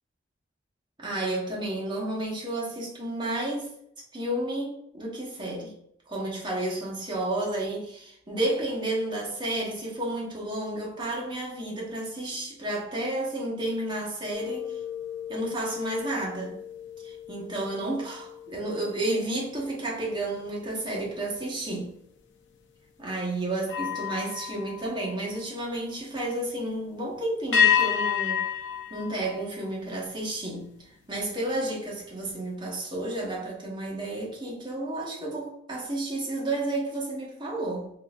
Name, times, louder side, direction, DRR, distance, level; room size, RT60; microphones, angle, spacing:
voice 1, 1.0-3.7 4.1-5.7 6.1-14.8 15.3-16.6 17.0-21.9 23.0-28.4 28.9-30.7 31.1-37.9, right 1 dB, 25° right, -4 dB, 1.0 m, -31 dB
sound 1, 14.3-19.9 20.4-20.7 23.6-25.8 27.5-30.1, left 8 dB, 85° left, 0.5 m, -30 dB
3.8 x 2.6 x 2.4 m, 0.71 s
head